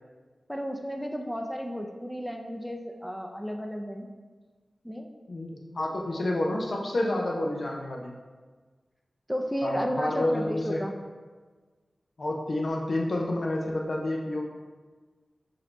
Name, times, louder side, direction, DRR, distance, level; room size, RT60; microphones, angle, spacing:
voice 1, 0.5-4.1 4.8-5.1 9.3-10.9, equal, ahead, 2 dB, 0.4 m, -33 dB
voice 2, 5.3-8.1 9.6-10.8 12.2-14.4, left 1 dB, 65° left, 0 dB, 0.5 m, -29 dB
5.6 x 2.6 x 3.3 m, 1.4 s
wide cardioid pair, 60°, 0 cm